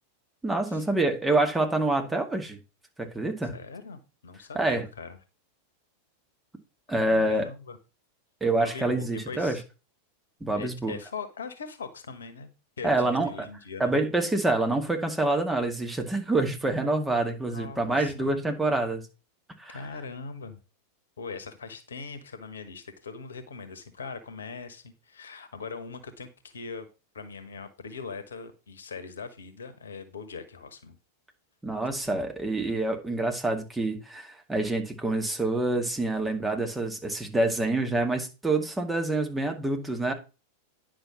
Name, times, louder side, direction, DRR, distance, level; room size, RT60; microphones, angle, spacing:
voice 1, 0.4-2.6 3.0-3.5 4.6-4.9 6.9-7.5 8.4-9.6 10.4-11.0 12.8-13.5 13.8-19.0 19.6-19.8 31.6-40.1, right 2 dB, 10° right, 2.1 m, -27 dB
voice 2, 3.4-5.2 7.0-7.8 8.5-9.6 10.5-12.5 12.8-13.9 17.5-18.3 19.7-20.6 21.2-26.9 27.1-30.9, left 5 dB, 70° left, 1.4 m, -41 dB
10.0 x 5.9 x 5.1 m
figure-of-eight pair, 90°, 0 cm